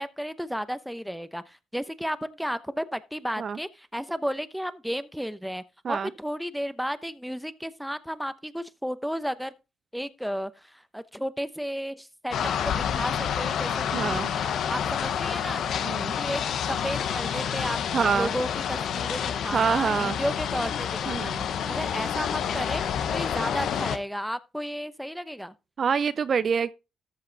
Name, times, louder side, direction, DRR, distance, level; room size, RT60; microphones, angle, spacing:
voice 1, 0.0-9.5 9.9-12.4 12.6-14.2 14.7-15.6 16.2-16.4 16.7-17.8 18.1-21.3 21.7-25.5, equal, ahead, 0.8 m, -33 dB
sound 1, 12.3-24.0, left 8 dB, 70° left, 0.9 m, -29 dB
voice 2, 13.9-14.3 15.8-16.1 17.4-17.5 17.9-18.3 19.5-20.2 21.1-21.5 25.8-26.7, right 6 dB, 50° right, 0.5 m, -26 dB
13.5 x 5.6 x 3.9 m
cardioid pair, 90°, 0 cm